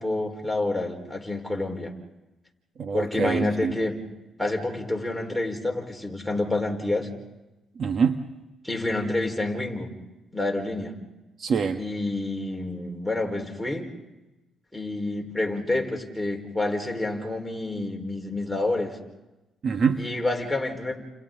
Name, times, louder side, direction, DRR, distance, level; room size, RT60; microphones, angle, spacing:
voice 1, 0.0-1.9 2.9-4.0 4.4-7.1 8.6-9.9 10.3-10.9 11.8-13.9 14.7-19.0 20.0-21.0, left 2 dB, 5° left, 1 dB, 4.5 m, -28 dB
voice 2, 2.8-3.7 7.7-8.2 11.4-11.8 19.6-20.0, right 6 dB, 50° right, 7 dB, 1.4 m, -25 dB
30.0 x 29.5 x 3.8 m, 1.0 s
cardioid pair, 90°, 0 cm